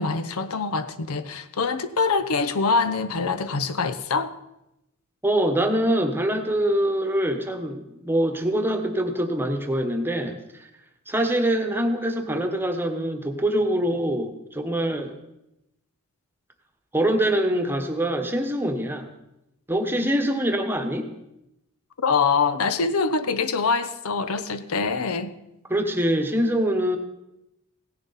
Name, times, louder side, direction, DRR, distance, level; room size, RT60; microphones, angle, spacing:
voice 1, 0.0-4.3 22.0-25.3, left 4 dB, 90° left, 0.7 m, -24 dB
voice 2, 5.2-10.7 11.1-15.2 16.9-19.1 19.7-21.1 25.7-27.0, right 1 dB, 10° right, 1.1 m, -24 dB
16.5 x 10.5 x 4.1 m
head